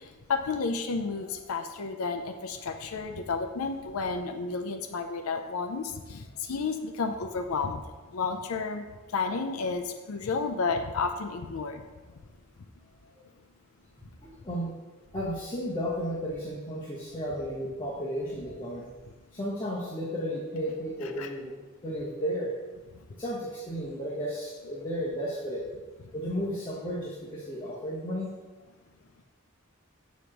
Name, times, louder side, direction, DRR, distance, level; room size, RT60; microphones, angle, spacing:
voice 1, 0.3-6.2 6.5-7.8 8.1-8.8 9.1-11.8 21.2-21.3, left 4 dB, 90° left, 6 dB, 0.5 m, -31 dB
voice 2, 14.2-14.7 15.1-18.9 19.3-21.5 21.8-22.5 23.2-25.6 26.1-28.3, equal, 20° left, -7 dB, 1.1 m, -33 dB
6.9 x 3.1 x 6.0 m, 1.2 s
head